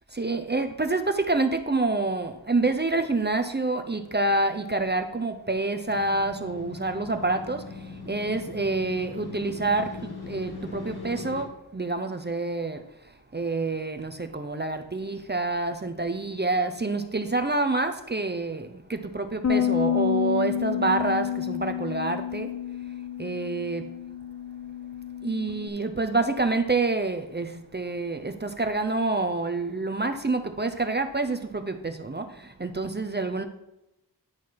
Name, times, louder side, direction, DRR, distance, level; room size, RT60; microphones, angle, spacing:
voice 1, 0.1-22.5 23.2-24.0 25.2-33.4, right 3 dB, 25° right, 0.7 m, -27 dB
Motorcycle, 5.9-11.5, left 4 dB, 65° left, 1.6 m, -40 dB
Bass guitar, 19.4-25.7, left 9 dB, 40° left, 0.7 m, -29 dB
10.5 x 4.5 x 4.5 m
wide cardioid pair, 70°, 40 cm